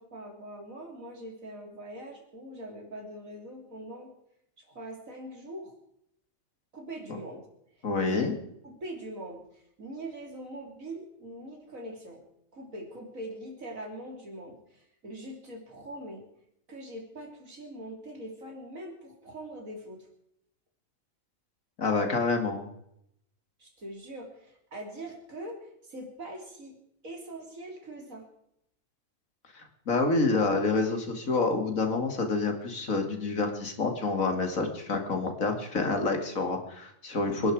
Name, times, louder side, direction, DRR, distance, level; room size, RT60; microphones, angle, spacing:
voice 1, 0.0-4.1 4.6-5.7 6.7-7.5 8.0-8.3 8.6-12.2 12.5-16.3 16.7-20.1 23.6-26.8 27.0-28.3, right 1 dB, 85° right, 2 dB, 3.9 m, -42 dB
voice 2, 7.8-8.3 21.8-22.7 29.5-37.5, left 3 dB, 85° left, 4 dB, 2.8 m, -28 dB
26.5 x 11.0 x 4.8 m, 0.76 s
omnidirectional pair, 1.4 m